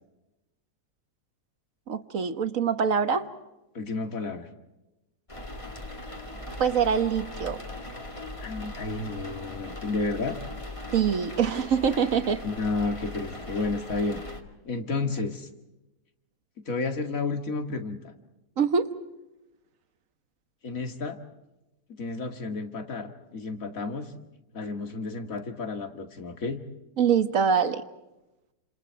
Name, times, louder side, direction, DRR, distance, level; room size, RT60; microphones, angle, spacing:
voice 1, 1.9-3.3 6.6-7.6 10.9-12.4 18.6-18.9 27.0-27.8, right 7 dB, 55° right, 10 dB, 1.6 m, -24 dB
voice 2, 3.7-4.5 8.4-10.4 12.4-14.2 14.6-15.5 16.7-18.0 20.6-21.2 22.0-24.1 24.5-26.6, left 3 dB, 55° left, 5 dB, 2.4 m, -31 dB
sound 1, 5.3-14.4, left 1 dB, 20° left, 2.1 m, -39 dB
29.5 x 27.5 x 4.7 m, 0.98 s
omnidirectional pair, 1.8 m